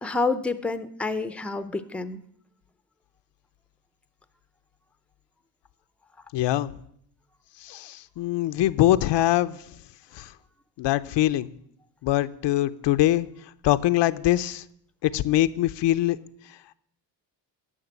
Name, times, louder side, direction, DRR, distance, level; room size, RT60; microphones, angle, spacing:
voice 1, 0.0-2.2, left 3 dB, 5° left, 12 dB, 0.6 m, -28 dB
voice 2, 6.3-6.7 7.6-9.6 10.1-10.3 10.8-11.5 12.0-13.3 13.6-14.6 15.0-16.2, left 14 dB, 70° left, 13 dB, 0.6 m, -23 dB
11.0 x 5.8 x 8.1 m, 0.69 s
cardioid pair, 105°, 44 cm